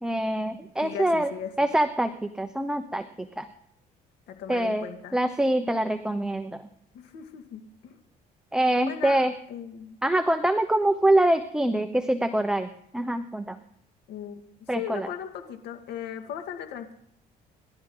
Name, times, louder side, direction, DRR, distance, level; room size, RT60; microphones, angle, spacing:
voice 1, 0.0-1.3 1.6-3.5 4.5-4.9 5.1-6.7 8.5-9.3 10.0-13.6 14.7-15.1, right 1 dB, 5° right, 8 dB, 0.9 m, -25 dB
voice 2, 0.8-1.5 4.3-5.2 6.9-8.0 8.8-9.2 9.5-10.0 14.1-16.9, left 9 dB, 80° left, 6 dB, 2.3 m, -38 dB
27.5 x 12.0 x 3.9 m, 0.70 s
cardioid pair, 110°, 17 cm